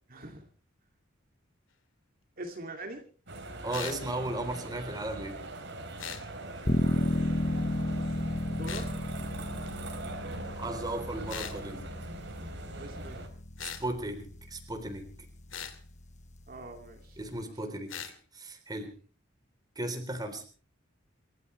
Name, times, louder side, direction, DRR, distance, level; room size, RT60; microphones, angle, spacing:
voice 1, 0.1-0.5 2.4-3.1 8.5-8.9 12.7-13.2 16.5-17.2, right 2 dB, 45° right, 3 dB, 2.6 m, -43 dB
sound 1, 3.3-13.3, right 2 dB, 65° right, 4.1 m, -42 dB
voice 2, 3.6-5.4 10.6-11.9 13.6-15.1 17.2-18.0 18.3-19.0 19.8-20.4, right 1 dB, 20° right, 7 dB, 3.7 m, -36 dB
sound 2, 3.7-4.0 6.0-6.3 8.7-8.9 11.3-11.6 13.6-13.9 15.5-15.8 17.9-18.1, left 8 dB, 70° left, 2.6 m, -39 dB
sound 3, 6.6-17.4, left 1 dB, 35° left, 1.4 m, -35 dB
28.5 x 14.5 x 3.3 m, 0.39 s
head